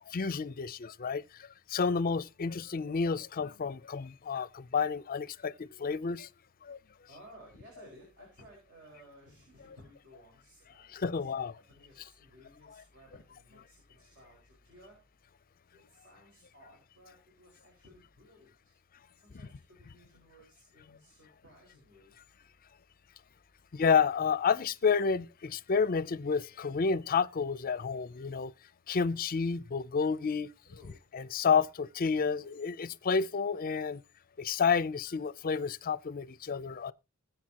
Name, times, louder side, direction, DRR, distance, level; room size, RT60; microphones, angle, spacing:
voice 1, 0.1-1.2 1.7-6.3 6.6-6.8 10.9-11.5 23.7-28.5 28.9-30.5 31.1-34.0 34.4-36.9, left 5 dB, 40° left, 0.5 m, -30 dB
voice 2, 7.1-15.0 15.7-18.5 19.2-22.1 30.6-31.0, equal, 60° right, 5.1 m, -57 dB
21.0 x 7.9 x 2.9 m
head